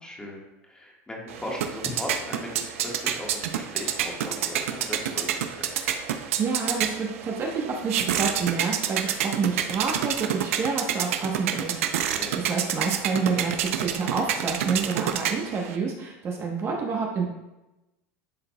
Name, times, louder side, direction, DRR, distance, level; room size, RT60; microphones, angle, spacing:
voice 1, 0.0-5.7 12.1-12.3, left 1 dB, 10° left, -1 dB, 1.5 m, -38 dB
sound 1, 1.3-15.8, right 9 dB, 90° right, 0.5 m, -29 dB
voice 2, 6.4-17.3, right 5 dB, 35° right, 0 dB, 1.0 m, -28 dB
11.5 x 4.0 x 2.3 m, 0.99 s
supercardioid pair, 115°, 7 cm